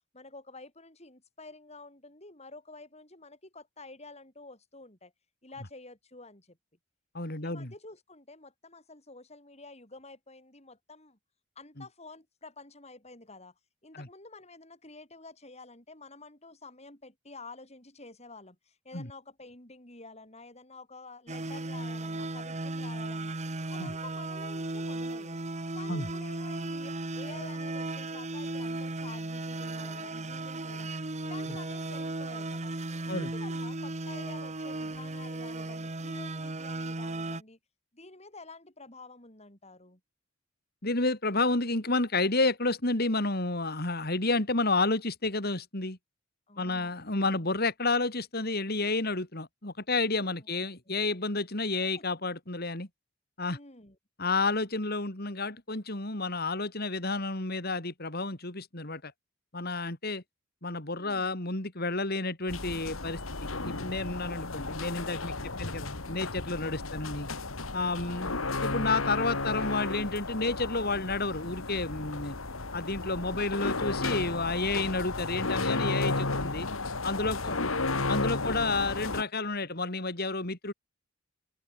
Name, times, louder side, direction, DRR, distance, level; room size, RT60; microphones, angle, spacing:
voice 1, 0.1-5.1 5.4-6.6 7.4-11.2 11.6-13.5 13.8-23.4 23.7-25.4 25.7-30.9 31.2-32.7 33.0-37.6 37.9-40.0 46.5-46.9 50.3-50.6 50.9-51.0 51.9-52.1 53.5-54.0 60.9-61.3 65.4-65.7 68.0-68.5 73.1-73.5, left 3 dB, 30° left, 7.6 m, -50 dB
voice 2, 7.1-7.7 11.8-11.9 13.9-14.1 18.9-19.1 23.8-23.9 25.9-26.1 33.1-33.3 40.8-46.0 46.6-52.9 53.4-53.6 54.2-59.1 59.5-60.2 60.6-67.3 67.7-68.3 68.6-72.4 72.7-76.7 77.0-77.6 78.1-80.7, left 3 dB, 50° left, 3.5 m, -30 dB
sound 1, 21.3-37.4, right 2 dB, 35° right, 1.4 m, -36 dB
sound 2, 62.5-79.2, left 3 dB, 85° left, 2.7 m, -33 dB
open air
head